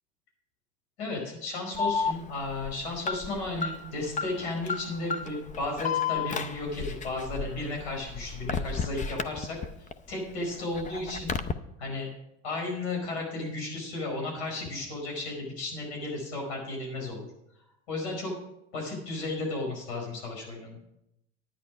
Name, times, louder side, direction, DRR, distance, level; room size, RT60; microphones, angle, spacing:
voice 1, 1.0-9.6 10.1-11.4 11.8-12.1 12.4-17.3 17.9-18.3 18.7-20.8, left 2 dB, 85° left, 0 dB, 5.0 m, -34 dB
Alarm, 1.7-9.9 10.3-11.5, left 5 dB, 25° left, 0.6 m, -33 dB
10.5 x 9.9 x 5.0 m, 0.84 s
supercardioid pair, 105°, 32 cm